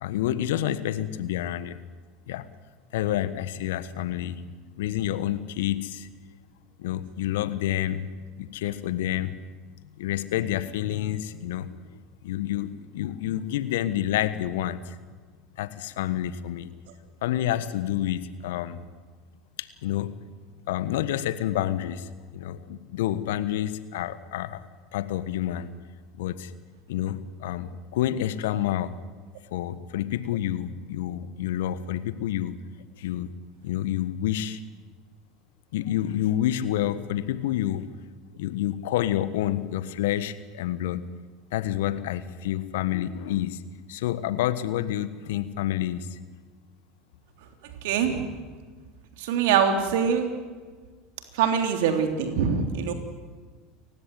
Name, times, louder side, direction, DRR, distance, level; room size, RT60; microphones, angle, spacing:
voice 1, 0.0-1.8 2.3-2.5 2.9-4.4 4.8-6.1 6.8-8.1 8.4-9.3 10.0-11.8 12.2-15.0 15.6-16.7 17.2-18.8 19.6-20.2 20.7-24.6 24.9-25.7 26.2-26.5 26.9-28.9 29.5-32.6 33.0-33.3 33.6-34.6 35.7-37.9 38.4-41.1 41.5-43.6 43.9-46.2, left 12 dB, 70° left, 14 dB, 1.3 m, -28 dB
voice 2, 47.8-48.2 49.2-50.3 51.3-52.9, right 7 dB, 65° right, 6 dB, 3.4 m, -23 dB
29.5 x 16.0 x 9.5 m, 1.4 s
figure-of-eight pair, 75°, 0 cm